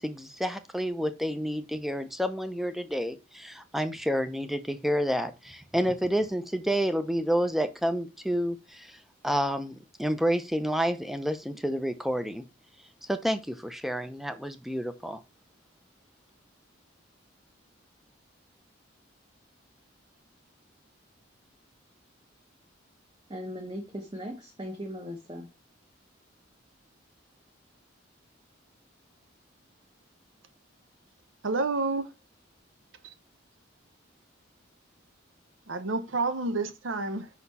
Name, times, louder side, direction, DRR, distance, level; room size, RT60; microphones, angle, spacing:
voice 1, 0.0-12.4 13.1-15.2, equal, ahead, 0.5 m, -29 dB
voice 2, 23.3-25.5, equal, 25° right, 1.0 m, -38 dB
voice 3, 31.4-32.1 33.0-33.1 35.7-37.3, right 3 dB, 75° right, 0.8 m, -29 dB
5.5 x 4.3 x 4.1 m
head